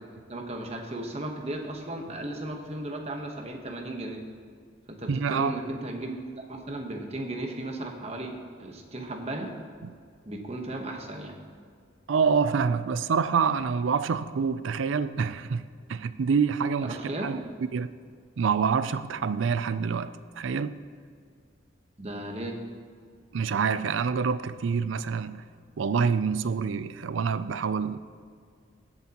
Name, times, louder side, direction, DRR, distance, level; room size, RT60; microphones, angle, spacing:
voice 1, 0.3-4.2 4.9-6.2 6.5-8.3 8.6-9.5 10.2-11.3 16.8-17.5 22.0-22.6, right 1 dB, 30° right, 1.1 m, -35 dB
voice 2, 5.1-5.6 9.8-9.9 12.1-15.6 15.9-17.0 17.2-17.4 17.7-17.9 18.4-20.7 23.3-25.4 25.8-28.0, right 6 dB, 75° right, 0.4 m, -26 dB
17.0 x 7.8 x 2.9 m
head